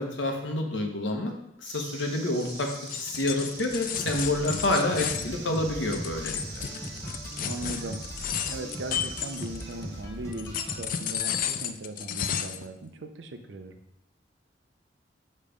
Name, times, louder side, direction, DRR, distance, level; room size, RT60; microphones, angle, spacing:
voice 1, 0.0-1.3 1.6-6.4, left 1 dB, 90° left, 3 dB, 1.0 m, -28 dB
sound 1, 1.6-10.0, right 4 dB, 55° right, 1.2 m, -44 dB
sound 2, 2.4-9.8 10.3-12.7, left 8 dB, 50° left, 0.3 m, -33 dB
sound 3, 4.0-11.2, equal, 15° left, 1.2 m, -39 dB
voice 2, 7.4-8.0 8.4-13.8, right 2 dB, 70° right, 6 dB, 0.7 m, -38 dB
6.8 x 3.3 x 5.1 m, 0.81 s
head